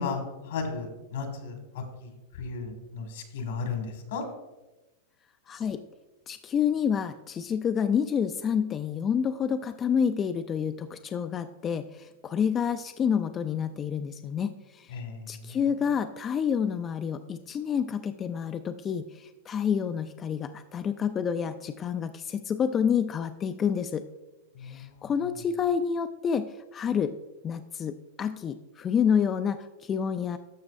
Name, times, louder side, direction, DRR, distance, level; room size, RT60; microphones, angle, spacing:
voice 1, 0.0-2.1 2.4-4.3 14.9-15.6 24.5-25.1, left 4 dB, 75° left, 5 dB, 1.7 m, -35 dB
voice 2, 5.5-5.8 6.3-14.9 15.3-24.0 24.6-26.5 26.7-27.1 27.4-30.4, left 7 dB, 25° left, 8 dB, 0.3 m, -28 dB
12.0 x 6.3 x 2.6 m, 1.0 s
supercardioid pair, 135°, 0 cm